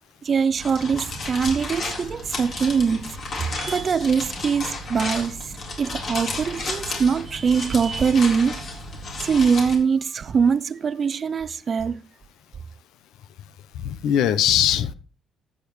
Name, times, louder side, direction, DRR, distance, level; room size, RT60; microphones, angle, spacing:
voice 1, 0.2-3.2 3.5-5.4 5.8-8.8 9.2-12.0, right 6 dB, 45° right, 0.5 m, -22 dB
sound 1, 0.5-9.7, left 2 dB, 55° left, 4.0 m, -33 dB
voice 2, 13.7-14.9, left 10 dB, 80° left, 0.8 m, -21 dB
13.0 x 8.7 x 3.2 m
cardioid pair, 85°, 0 cm